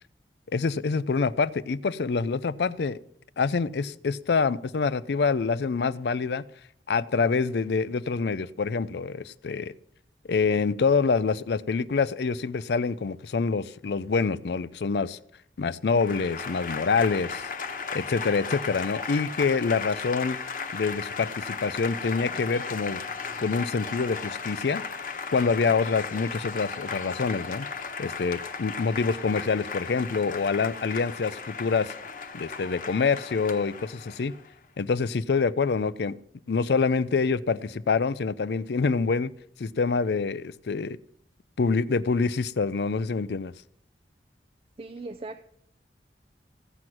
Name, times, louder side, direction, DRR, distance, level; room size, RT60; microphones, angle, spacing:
voice 1, 0.5-3.0 3.4-6.4 6.9-9.7 10.3-15.2 15.6-17.4 17.9-20.4 20.7-23.0 23.4-24.8 25.3-27.7 28.0-31.9 32.3-34.3 34.8-36.1 36.5-39.3 39.6-41.0 41.6-43.5, left 4 dB, 75° left, 18 dB, 0.5 m, -26 dB
Applause / Crowd, 15.9-34.5, left 5 dB, 50° left, 1.0 m, -36 dB
voice 2, 44.8-45.4, right 3 dB, 30° right, 6 dB, 0.4 m, -38 dB
15.0 x 7.9 x 6.0 m, 0.70 s
head